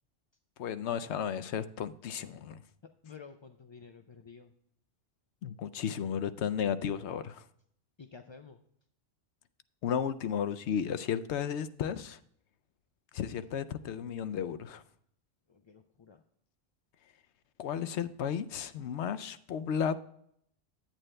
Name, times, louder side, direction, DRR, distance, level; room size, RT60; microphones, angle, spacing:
voice 1, 0.6-2.6 5.4-7.4 9.8-12.2 13.1-14.8 17.6-20.0, left 8 dB, 90° left, 12 dB, 0.9 m, -33 dB
voice 2, 3.0-4.5 8.0-8.6 15.5-16.2, left 5 dB, 40° left, 6 dB, 0.4 m, -51 dB
8.9 x 8.9 x 3.2 m, 0.69 s
omnidirectional pair, 1.1 m